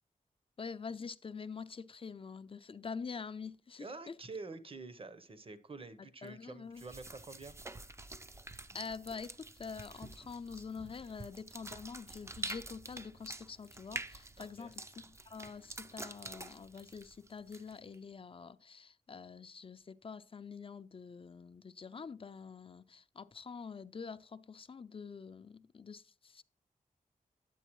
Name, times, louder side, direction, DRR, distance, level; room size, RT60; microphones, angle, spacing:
voice 1, 0.6-4.1 6.2-6.8 8.7-26.4, left 5 dB, 40° left, 0.4 m, -46 dB
voice 2, 3.8-7.6 14.4-14.7, right 3 dB, 40° right, 0.8 m, -48 dB
sound 1, 6.7-17.9, right 2 dB, 20° right, 0.4 m, -47 dB
10.0 x 8.1 x 3.0 m
wide cardioid pair, 90°, 15 cm